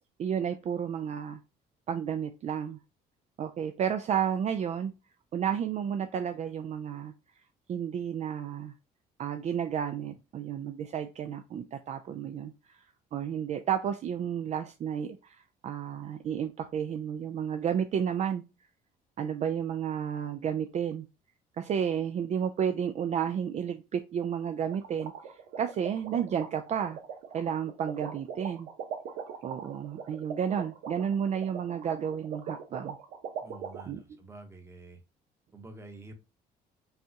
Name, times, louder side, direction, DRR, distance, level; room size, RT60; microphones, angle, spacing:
voice 1, 0.2-1.4 1.9-2.8 3.4-4.9 5.3-7.1 7.7-8.7 9.2-12.8 13.1-18.4 19.2-21.1 21.6-27.0 27.3-28.7 29.4-33.0 33.9-34.0, right 8 dB, 40° right, 8 dB, 0.4 m, -32 dB
sound 1, 24.7-33.8, right 7 dB, 85° right, 0.8 m, -40 dB
voice 2, 33.4-35.0 35.5-36.1, right 2 dB, 15° right, 5 dB, 1.0 m, -48 dB
5.4 x 2.3 x 2.8 m, 0.29 s
cardioid pair, 110°, 17 cm